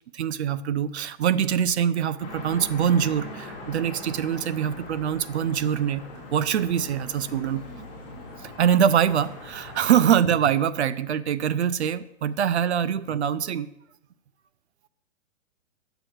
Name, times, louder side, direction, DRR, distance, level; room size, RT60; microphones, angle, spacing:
voice 1, 0.1-6.0 6.3-7.6 8.6-13.7, right 9 dB, 60° right, 16 dB, 0.6 m, -24 dB
sound 1, 2.2-9.9, left 2 dB, 15° left, 2.2 m, -41 dB
8.7 x 6.9 x 4.5 m, 0.84 s
hypercardioid pair, 165°, 39 cm